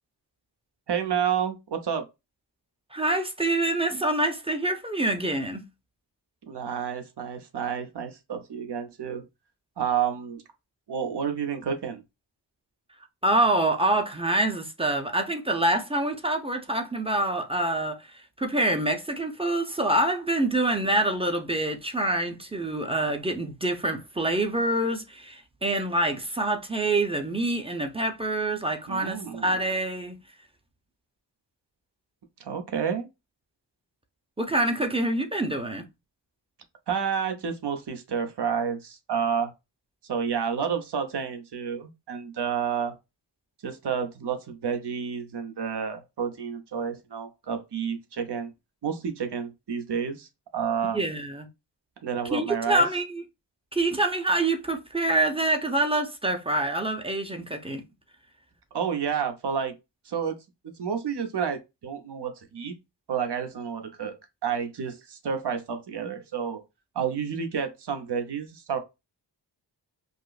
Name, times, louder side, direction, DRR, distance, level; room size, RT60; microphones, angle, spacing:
voice 1, 0.9-2.0 6.5-9.2 9.8-10.4 10.9-12.0 28.9-29.5 32.4-33.1 36.9-39.5 40.0-43.0 43.6-48.5 48.8-51.0 52.0-52.8 58.7-59.7 60.1-60.3 60.8-62.8 63.1-64.2 64.4-66.6 66.9-68.8, right 7 dB, 65° right, 0.8 m, -30 dB
voice 2, 2.9-5.6 13.2-30.2 34.4-35.8 50.9-51.5 52.3-53.2 53.7-57.8, right 1 dB, 15° right, 0.6 m, -26 dB
5.0 x 2.0 x 2.4 m
wide cardioid pair, 100°, 45 cm